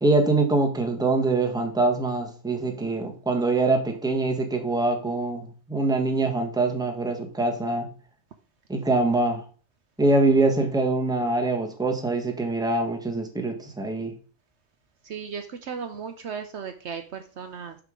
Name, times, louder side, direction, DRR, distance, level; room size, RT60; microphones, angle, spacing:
voice 1, 0.0-7.9 8.7-9.4 10.0-14.1, right 2 dB, 5° right, 3 dB, 1.1 m, -24 dB
voice 2, 15.0-17.8, right 6 dB, 65° right, 7 dB, 0.9 m, -36 dB
6.7 x 6.1 x 3.7 m, 0.40 s
omnidirectional pair, 1.4 m